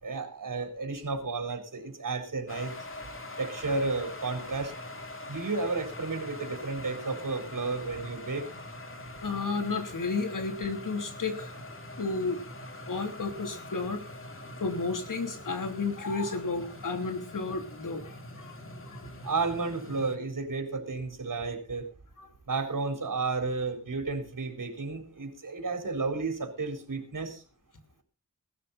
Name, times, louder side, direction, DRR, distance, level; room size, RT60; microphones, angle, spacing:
voice 1, 0.0-2.7 3.4-4.7 5.3-8.5 19.2-21.9 22.5-27.4, right 3 dB, 80° right, 5 dB, 4.2 m, -32 dB
sound 1, 2.5-20.2, left 1 dB, 40° left, 2.9 m, -43 dB
voice 2, 9.2-11.5 12.0-12.4 12.9-14.0 14.6-18.6 18.9-19.0 22.2-22.3, left 4 dB, 80° left, 6 dB, 3.2 m, -32 dB
19.0 x 13.0 x 4.1 m, 0.36 s
wide cardioid pair, 80°, 32 cm